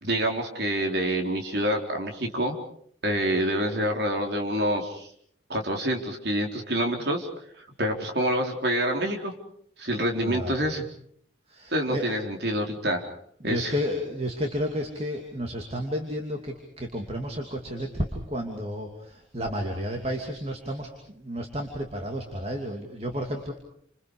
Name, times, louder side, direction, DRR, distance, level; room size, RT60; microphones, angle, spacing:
voice 1, 0.0-2.6 3.0-5.1 5.5-7.3 7.6-9.3 9.8-10.9 11.7-13.1 13.4-13.7, equal, 55° right, 2 dB, 4.2 m, -27 dB
voice 2, 10.2-10.6 11.5-12.1 13.4-20.9 21.1-23.5, equal, 30° right, 2 dB, 2.8 m, -31 dB
30.0 x 27.0 x 5.0 m, 0.64 s
head